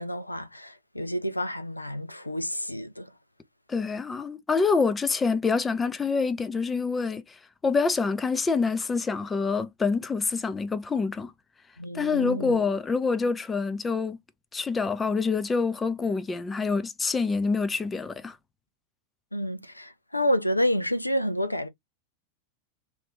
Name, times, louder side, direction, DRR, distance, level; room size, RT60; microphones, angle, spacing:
voice 1, 0.0-3.1 11.8-12.6 19.3-21.7, equal, 85° left, 0.4 m, -29 dB
voice 2, 3.7-11.3 11.9-14.2 14.5-18.4, left 4 dB, 15° left, 0.5 m, -26 dB
3.1 x 2.5 x 3.4 m
figure-of-eight pair, 90°, 0 cm